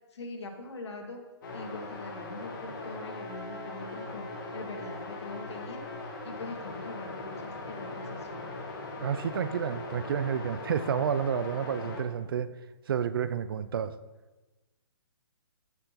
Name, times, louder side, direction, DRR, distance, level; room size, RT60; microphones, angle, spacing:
voice 1, 0.1-1.2 1.5-4.3 4.5-5.8 6.2-8.5, left 3 dB, 70° left, 3 dB, 1.6 m, -42 dB
sound 1, 1.4-12.0, left 2 dB, 45° left, 1.6 m, -40 dB
voice 2, 9.0-12.5 12.9-13.9, right 8 dB, 50° right, 14 dB, 0.4 m, -30 dB
15.0 x 5.9 x 2.8 m, 1.2 s
hypercardioid pair, 150°, 15 cm